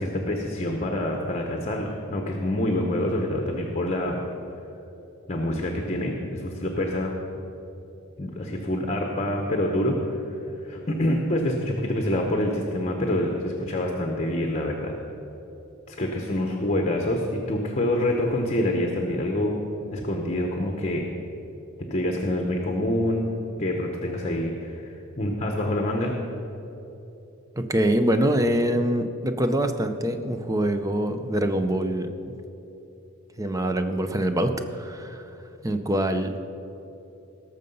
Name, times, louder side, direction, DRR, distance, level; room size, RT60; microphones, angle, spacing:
voice 1, 0.0-4.2 5.3-7.1 8.2-10.2 10.6-14.9 15.9-19.6 19.9-21.1 21.9-23.2 23.6-26.1, left 1 dB, 30° left, 2 dB, 0.9 m, -26 dB
voice 2, 27.6-32.1 33.4-35.2 35.6-36.3, right 1 dB, 15° right, 7 dB, 0.6 m, -24 dB
18.0 x 6.6 x 5.4 m, 3.0 s
head